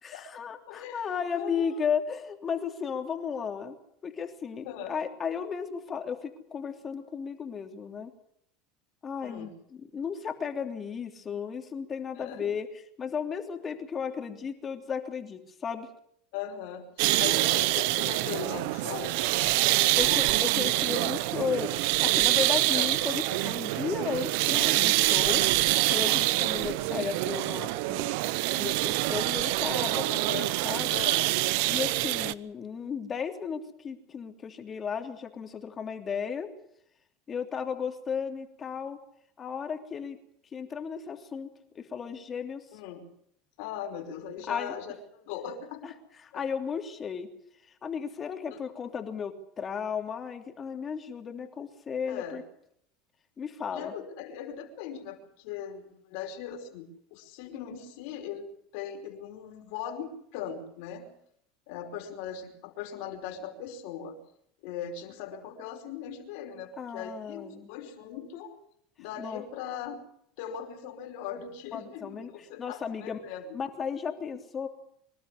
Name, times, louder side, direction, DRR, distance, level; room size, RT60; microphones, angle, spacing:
voice 1, 0.0-3.8 4.0-8.1 9.0-12.7 13.0-15.9 19.9-25.4 25.9-28.1 28.6-30.1 30.6-31.0 31.7-36.5 37.3-39.0 39.4-40.2 40.5-42.6 44.5-44.8 45.8-45.9 46.3-47.3 47.8-52.4 53.4-53.9 66.8-67.7 69.2-69.4 71.7-72.3 72.6-73.2 73.5-74.7, left 6 dB, 30° left, 5 dB, 3.1 m, -34 dB
voice 2, 0.7-1.7 4.6-5.0 9.2-9.6 12.1-12.5 16.3-20.2 22.7-22.9 25.6-26.1 30.1-30.6 30.9-31.3 42.7-43.1 43.6-45.9 46.3-46.4 48.5-48.6 52.0-52.4 53.7-58.5 58.7-61.2 61.7-64.1 64.6-68.6 69.0-70.0 70.4-73.5, left 8 dB, 70° left, 4 dB, 5.1 m, -39 dB
sound 1, 17.0-32.3, right 19 dB, 70° right, 0.8 m, -26 dB
25.5 x 12.5 x 9.9 m, 0.73 s
supercardioid pair, 100°, 0 cm